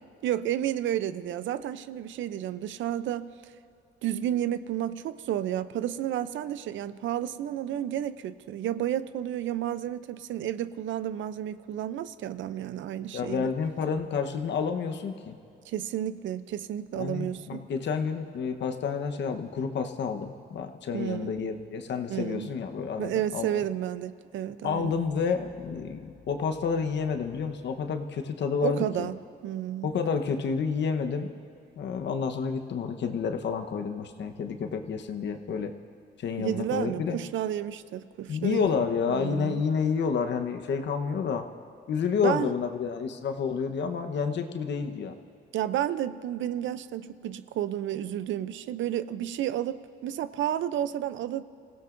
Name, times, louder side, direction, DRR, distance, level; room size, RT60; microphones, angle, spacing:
voice 1, 0.2-3.3 4.0-13.5 15.7-17.6 20.9-21.3 22.1-22.5 23.0-24.9 28.6-29.2 29.4-29.9 36.4-38.7 39.1-39.6 42.2-42.5 45.5-51.4, right 11 dB, 75° right, 14 dB, 0.6 m, -31 dB
voice 2, 13.1-15.4 16.9-23.6 24.6-29.1 29.8-31.3 31.8-35.7 36.2-37.2 38.3-41.4 41.9-45.1, left 6 dB, 65° left, 6 dB, 1.1 m, -29 dB
26.5 x 16.5 x 2.6 m, 2.6 s
cardioid pair, 90°, 20 cm